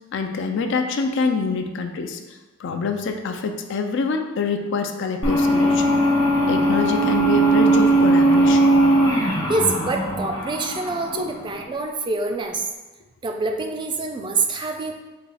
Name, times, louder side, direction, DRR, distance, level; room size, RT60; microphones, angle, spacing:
voice 1, 0.1-2.2 2.6-8.6 11.1-11.3, left 4 dB, 60° left, 6 dB, 0.4 m, -26 dB
sound 1, 5.2-11.6, right 1 dB, 90° left, 1.0 m, -19 dB
voice 2, 9.5-12.6 13.2-15.0, right 3 dB, 25° right, 4 dB, 0.4 m, -26 dB
5.2 x 2.3 x 4.1 m, 1.2 s
head